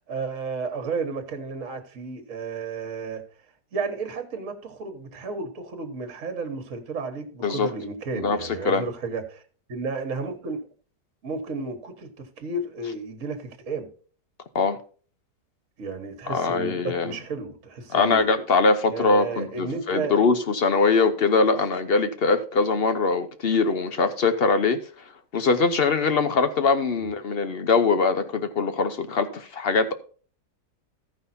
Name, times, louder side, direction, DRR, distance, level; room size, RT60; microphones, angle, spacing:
voice 1, 0.1-3.2 3.7-9.4 9.7-10.7 11.2-13.9 15.8-18.3 18.9-20.2 26.9-27.1, right 4 dB, 55° right, 1.6 m, -32 dB
voice 2, 16.3-17.1 17.9-24.8 25.3-29.9, left 4 dB, 50° left, 0.7 m, -22 dB
14.0 x 5.5 x 4.1 m
omnidirectional pair, 1.7 m